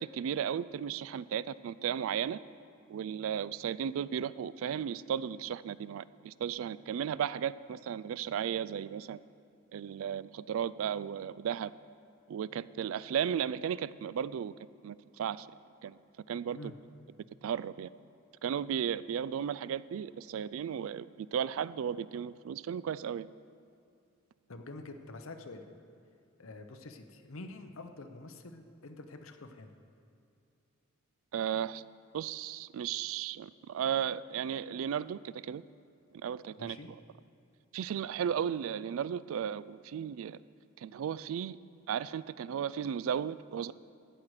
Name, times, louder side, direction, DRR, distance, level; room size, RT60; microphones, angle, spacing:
voice 1, 0.0-2.4 2.9-9.2 9.7-11.7 12.3-14.5 14.8-15.5 15.8-16.0 16.3-16.6 17.4-17.9 18.4-23.3 31.3-31.8 32.1-35.6 36.1-36.8 37.7-40.4 40.8-41.6 41.9-43.7, right 8 dB, 70° right, 19 dB, 0.3 m, -35 dB
voice 2, 24.5-25.6 26.4-29.7 36.6-36.9, left 2 dB, 70° left, 6 dB, 0.9 m, -47 dB
14.5 x 9.0 x 4.9 m, 2.4 s
head